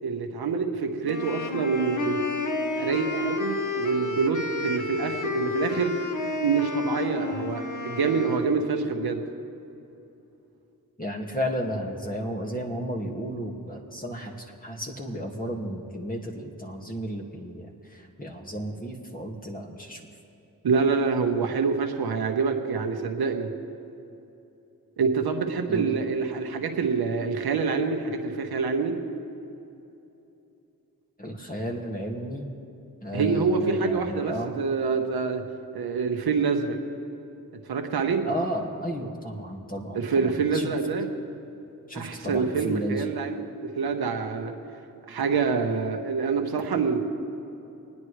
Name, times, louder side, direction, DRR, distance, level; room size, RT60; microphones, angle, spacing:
voice 1, 0.0-2.2 2.8-6.0 6.4-9.2 20.6-23.5 25.0-29.0 33.1-35.4 35.7-36.8 37.7-38.2 39.9-41.1 41.9-44.5 45.1-47.0, right 5 dB, 85° right, 4 dB, 1.3 m, -26 dB
sound 1, 1.0-8.5, left 4 dB, 55° left, 1.3 m, -31 dB
voice 2, 11.0-20.0 25.7-25.9 31.2-32.5 33.0-34.5 38.2-40.7 41.9-43.1, equal, 25° left, -1 dB, 2.2 m, -33 dB
28.0 x 9.6 x 3.3 m, 2.9 s
cardioid pair, 45°, 37 cm